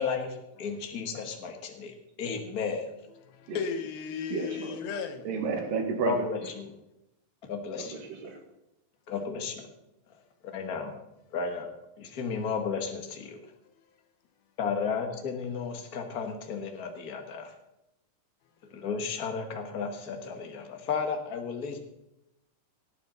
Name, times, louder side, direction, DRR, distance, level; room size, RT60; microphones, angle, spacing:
voice 1, 0.0-2.9 6.1-6.7 7.4-8.0 9.1-9.7 10.5-10.9 11.3-11.7 12.0-13.4 14.6-17.5 18.7-21.8, left 5 dB, 40° left, 1.3 m, -33 dB
voice 2, 3.3-5.3, left 6 dB, 90° left, 3.0 m, -35 dB
voice 3, 4.3-4.8 5.3-6.3 7.8-8.4, right 5 dB, 70° right, 3.6 m, -31 dB
18.0 x 9.6 x 4.0 m
omnidirectional pair, 4.1 m